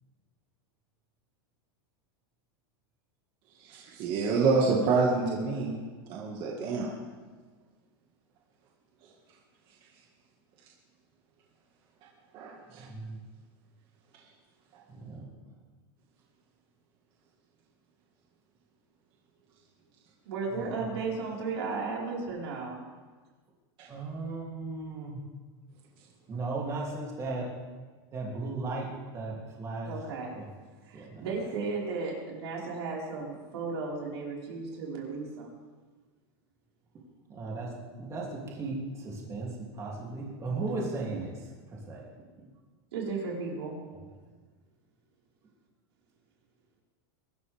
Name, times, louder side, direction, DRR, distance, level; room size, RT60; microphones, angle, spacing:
voice 1, 3.6-5.8 6.1-6.9 12.3-12.9, right 4 dB, 40° right, -2 dB, 2.0 m, -27 dB
voice 2, 12.8-13.2 14.9-15.3 20.5-20.9 23.9-25.2 26.3-27.5 28.1-28.9 29.1-29.9 30.3-30.5 30.9-31.5 37.3-37.7 38.0-42.1 43.9-44.0, right 3 dB, 20° right, -3 dB, 3.1 m, -36 dB
voice 3, 20.2-22.8 29.8-30.4 30.9-35.5 40.5-40.7 41.1-41.2 42.9-43.8, right 4 dB, 85° right, -3 dB, 5.0 m, -35 dB
23.5 x 12.5 x 3.6 m, 1.4 s
supercardioid pair, 155°, 14 cm